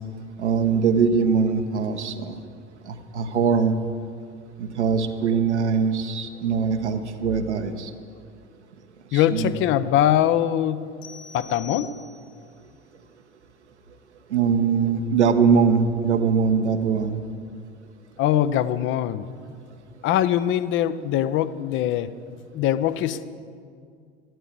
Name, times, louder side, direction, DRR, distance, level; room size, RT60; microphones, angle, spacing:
voice 1, 0.4-2.3 2.8-3.8 4.6-7.9 9.1-9.6 14.3-17.2, right 6 dB, 75° right, 7 dB, 1.2 m, -22 dB
voice 2, 9.1-10.9 11.3-12.0 18.2-19.3 20.0-22.1 22.5-23.2, left 11 dB, 35° left, 14 dB, 0.7 m, -22 dB
sound 1, 11.0-12.5, left 7 dB, 55° left, 1.4 m, -44 dB
12.5 x 11.0 x 7.6 m, 2.2 s
figure-of-eight pair, 75°, 34 cm